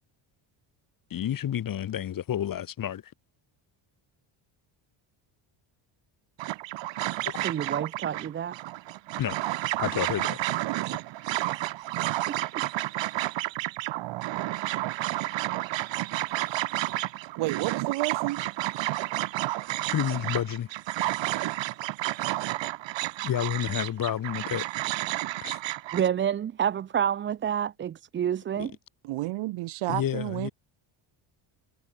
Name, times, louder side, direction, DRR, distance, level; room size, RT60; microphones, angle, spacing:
voice 1, 1.1-3.1 9.2-9.4 9.8-10.4 19.9-20.7 23.2-24.6 25.4-25.6 28.6-28.7 29.9-30.5, left 10 dB, 45° left, 3.2 m, -30 dB
sound 1, 6.4-26.1, right 16 dB, 65° right, 1.7 m, -31 dB
voice 2, 7.3-8.6 12.3-12.4 25.9-28.8, right 9 dB, 25° right, 0.4 m, -28 dB
voice 3, 17.4-18.4 29.0-30.5, right 18 dB, 80° right, 3.6 m, -30 dB
cardioid pair, 160°, 48 cm